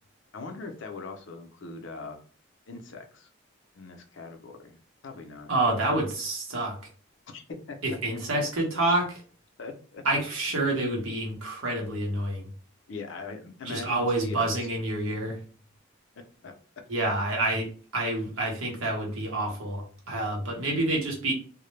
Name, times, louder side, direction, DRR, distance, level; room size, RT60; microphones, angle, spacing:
voice 1, 0.3-2.2 2.7-3.3 3.7-5.5 7.3-7.8 9.6-10.0 12.9-14.7 16.4-16.5, left 3 dB, 65° left, 5 dB, 0.5 m, -41 dB
voice 2, 5.5-6.8 7.8-9.2 10.0-12.5 13.6-15.4 16.9-21.3, right 2 dB, 80° right, -1 dB, 0.9 m, -28 dB
2.1 x 2.0 x 3.1 m, 0.41 s
head